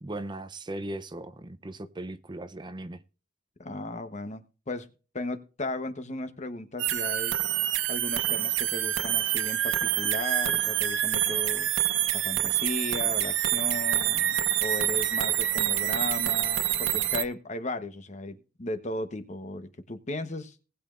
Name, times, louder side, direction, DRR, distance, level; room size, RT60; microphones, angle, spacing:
voice 1, 0.0-3.0, right 1 dB, 25° right, 11 dB, 0.6 m, -38 dB
voice 2, 3.6-4.9 5.1-7.4 7.9-11.7 12.1-20.5, left 2 dB, 40° left, 9 dB, 1.1 m, -36 dB
sound 1, 6.8-17.2, right 11 dB, 90° right, 0.9 m, -27 dB
19.5 x 8.7 x 2.5 m, 0.35 s
head